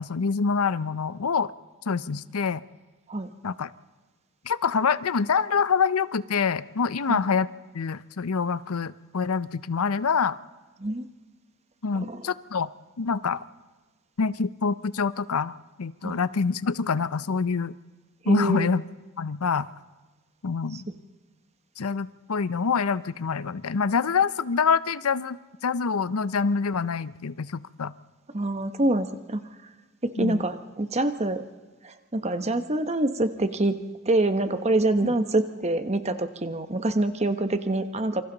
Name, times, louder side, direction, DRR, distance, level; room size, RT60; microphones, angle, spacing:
voice 1, 0.0-1.5 1.9-2.6 3.4-3.7 4.4-7.5 7.7-10.4 11.8-12.7 13.0-13.4 14.2-17.7 18.3-18.8 19.2-19.7 20.4-20.8 21.8-27.9 30.2-30.4 35.0-35.1, left 5 dB, 80° left, 16 dB, 0.6 m, -26 dB
voice 2, 11.9-12.3 16.0-16.2 18.2-18.7 20.7-20.9 28.3-29.4 30.0-31.4 31.8-33.7 34.0-38.2, right 2 dB, 30° right, 9 dB, 1.1 m, -26 dB
27.5 x 25.0 x 4.0 m, 1.3 s
head